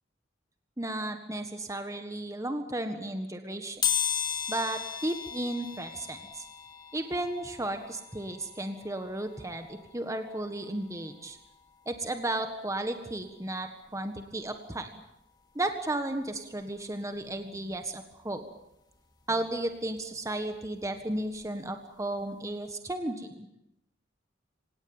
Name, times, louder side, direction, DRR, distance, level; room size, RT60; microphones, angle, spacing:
voice 1, 0.8-3.8 4.5-6.5 6.9-11.4 11.8-15.0 15.5-18.5 19.3-23.5, right 1 dB, 15° right, 7 dB, 1.6 m, -34 dB
sound 1, 3.8-14.5 15.0-15.1 16.2-16.3 16.6-18.7 19.0-21.7 22.0-22.2 22.5-22.6, left 8 dB, 25° left, 2.6 m, -37 dB
26.5 x 17.5 x 9.0 m, 0.87 s
head